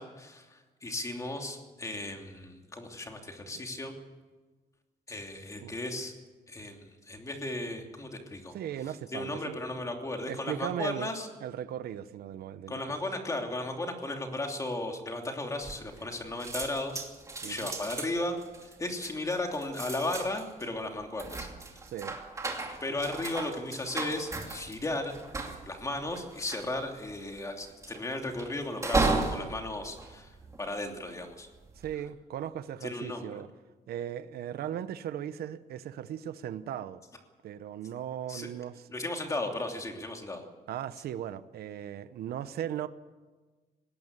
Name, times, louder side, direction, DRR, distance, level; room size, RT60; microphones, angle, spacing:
voice 1, 0.0-3.9 5.1-6.1 6.5-8.5 9.1-11.3 12.7-17.0 17.4-21.7 22.8-25.1 25.7-31.5 32.8-33.4 38.3-38.5 38.9-40.4, left 2 dB, 20° left, 2.9 m, -35 dB
voice 2, 8.5-9.6 10.3-11.1 11.4-12.8 17.4-17.7 21.9-22.2 31.8-33.5 33.9-37.0 37.4-38.9 40.7-42.9, right 10 dB, 80° right, 0.9 m, -37 dB
sound 1, 15.6-16.1 16.4-31.0 31.5-31.9, right 3 dB, 20° right, 2.6 m, -35 dB
20.0 x 17.5 x 8.2 m
cardioid pair, 145°, 16 cm